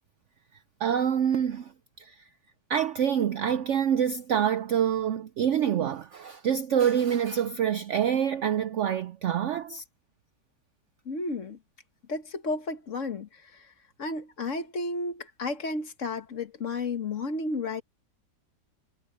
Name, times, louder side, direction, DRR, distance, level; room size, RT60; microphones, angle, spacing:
voice 1, 0.8-1.7 2.0-2.2 2.7-9.8, right 9 dB, 85° right, 0.6 m, -26 dB
voice 2, 11.0-11.6 12.1-13.7 14.0-17.8, left 3 dB, 45° left, 1.7 m, -32 dB
omnidirectional pair, 1.9 m